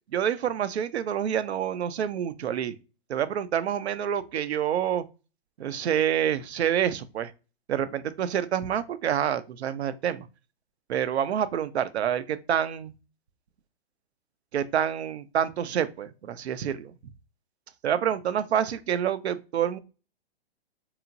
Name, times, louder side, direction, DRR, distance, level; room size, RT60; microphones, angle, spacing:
voice 1, 0.1-2.8 3.1-5.0 5.6-7.3 7.7-10.3 10.9-12.9 14.5-16.9 17.8-19.8, right 9 dB, 85° right, 0.5 m, -27 dB
2.9 x 2.4 x 2.4 m
hypercardioid pair, 135°, 32 cm